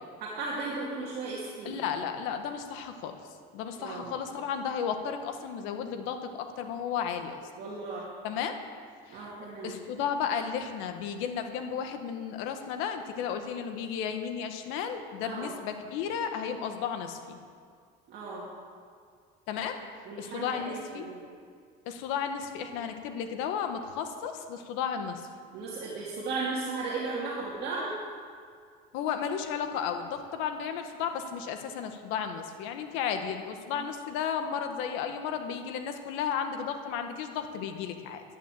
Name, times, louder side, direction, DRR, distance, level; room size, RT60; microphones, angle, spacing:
voice 1, 0.2-1.8 3.8-4.1 7.6-8.1 9.1-9.8 15.2-15.5 18.1-18.5 20.1-21.2 25.5-27.9 33.8-33.9, right 3 dB, 55° right, -5 dB, 2.5 m, -35 dB
voice 2, 1.6-3.2 3.5-7.4 8.2-8.6 9.1-9.2 9.6-17.4 19.5-19.8 20.2-21.1 21.8-25.3 28.9-38.2, left 7 dB, 80° left, 6 dB, 1.5 m, -33 dB
11.5 x 11.0 x 7.6 m, 2.1 s
cardioid pair, 140°, 20 cm